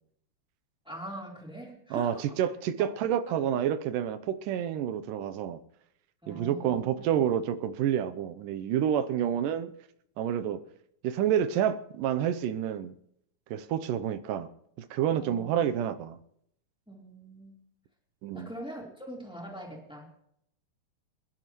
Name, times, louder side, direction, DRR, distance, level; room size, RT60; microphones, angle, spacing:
voice 1, 0.9-2.2 2.8-2.9 3.3-3.4 6.2-6.8 15.2-15.6 16.9-17.6 18.3-20.1, right 1 dB, ahead, 3.4 m, -42 dB
voice 2, 1.9-5.6 6.3-9.7 10.2-10.6 11.0-12.9 13.5-14.5 14.9-16.2 18.2-18.5, right 9 dB, 90° right, 2.4 m, -29 dB
26.5 x 11.0 x 3.1 m
omnidirectional pair, 3.8 m